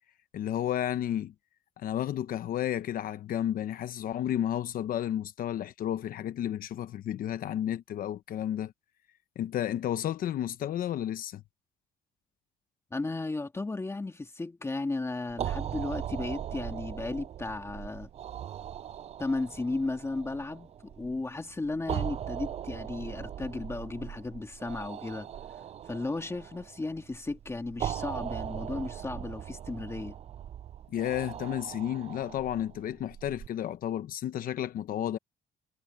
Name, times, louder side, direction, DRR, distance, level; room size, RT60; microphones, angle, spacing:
voice 1, 0.3-1.3 1.8-8.7 9.4-11.4 30.9-35.2, left 11 dB, 60° left, 0.9 m, -32 dB
voice 2, 12.9-18.1 19.2-25.3 25.9-30.2, left 3 dB, 15° left, 2.1 m, -35 dB
Darth Vader Breathing, 15.3-33.5, right 10 dB, 40° right, 0.4 m, -39 dB
cardioid pair, 110°, 17 cm